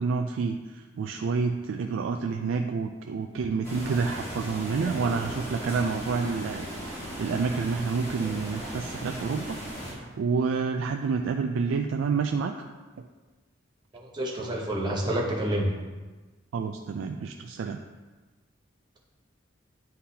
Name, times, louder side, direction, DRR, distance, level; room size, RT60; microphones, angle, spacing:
voice 1, 0.0-6.7 7.0-9.6 9.9-12.5 13.0-13.1 14.4-14.5 16.5-17.8, right 5 dB, 80° right, 4 dB, 0.3 m, -29 dB
sound 1, 3.6-9.9, equal, 15° left, 1.5 m, -37 dB
voice 2, 13.9-15.7, right 1 dB, 20° right, -2 dB, 0.9 m, -28 dB
9.9 x 3.9 x 2.8 m, 1.3 s
head